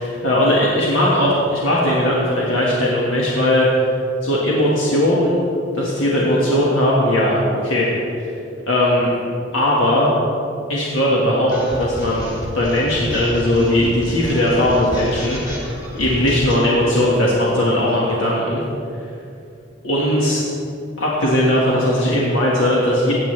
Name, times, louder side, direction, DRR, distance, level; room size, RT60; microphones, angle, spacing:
voice 1, 0.0-3.7 4.2-5.3 5.7-7.9 8.2-8.3 8.7-9.1 9.5-10.1 10.7-18.6 19.8-20.4 21.0-23.1, left 1 dB, 85° left, -5 dB, 1.6 m, -18 dB
sound 1, 11.5-16.6, equal, 20° left, 1.9 m, -31 dB
16.0 x 8.6 x 3.3 m, 2.6 s
head